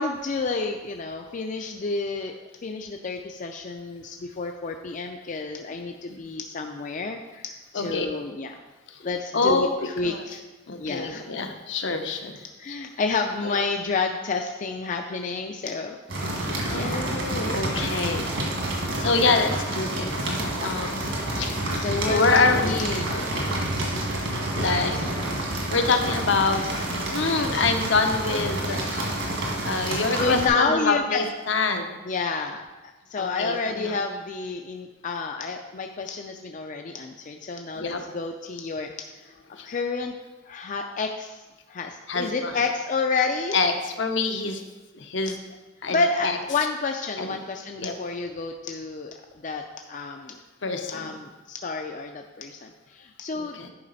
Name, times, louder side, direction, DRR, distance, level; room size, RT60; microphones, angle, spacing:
voice 1, 0.0-8.6 9.0-10.4 10.8-11.2 12.6-16.3 16.7-17.0 21.1-21.3 21.7-23.0 30.2-31.3 32.1-39.1 39.6-40.1 40.4-41.4 41.7-43.6 45.9-49.2 49.4-49.6 49.9-50.4 50.9-53.6, left 4 dB, 40° left, 4 dB, 0.4 m, -29 dB
voice 2, 7.7-8.1 8.9-9.0 9.3-9.7 10.0-10.2 10.7-12.4 12.7-12.8 13.4-13.6 16.7-18.3 18.6-20.3 20.6-21.5 22.1-23.6 24.5-25.0 25.7-29.3 29.7-32.0 33.2-33.9 37.7-38.0 39.5-39.7 42.1-42.6 43.5-44.6 44.9-45.4 45.8-46.4 47.2-47.4 47.8-47.9 50.6-51.2 53.3-53.7, left 3 dB, 70° left, 5 dB, 0.8 m, -26 dB
sound 1, 16.1-30.5, right 1 dB, 70° right, 1.8 m, -28 dB
10.5 x 4.9 x 4.0 m, 1.2 s
head